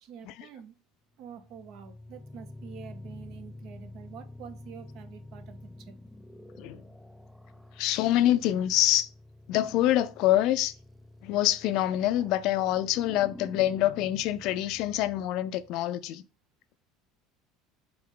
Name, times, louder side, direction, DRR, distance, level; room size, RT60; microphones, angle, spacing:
voice 1, 0.0-0.7 1.2-6.0, right 8 dB, 60° right, 0.7 m, -47 dB
sound 1, 1.2-15.8, left 1 dB, ahead, 0.3 m, -49 dB
voice 2, 7.8-9.1 9.5-10.7 11.2-16.2, left 13 dB, 65° left, 0.4 m, -26 dB
4.0 x 3.5 x 3.7 m
supercardioid pair, 115°, 0 cm